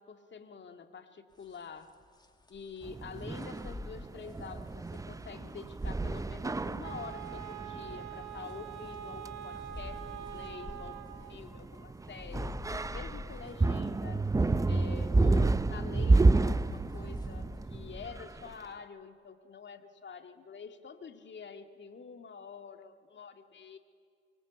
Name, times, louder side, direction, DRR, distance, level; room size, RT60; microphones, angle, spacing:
voice 1, 0.0-2.0 2.5-12.5 12.9-14.2 14.7-23.8, left 5 dB, 35° left, 6 dB, 2.2 m, -47 dB
sound 1, 1.3-7.3 8.2-11.7 12.0-18.6, left 2 dB, 15° left, 2.3 m, -48 dB
sound 2, 2.8-18.5, right 3 dB, 10° right, 0.6 m, -31 dB
Wind instrument woodwind instrument, 6.8-11.4, right 11 dB, 60° right, 1.9 m, -44 dB
24.0 x 24.0 x 8.4 m, 2.1 s
hypercardioid pair, 55°, 31 cm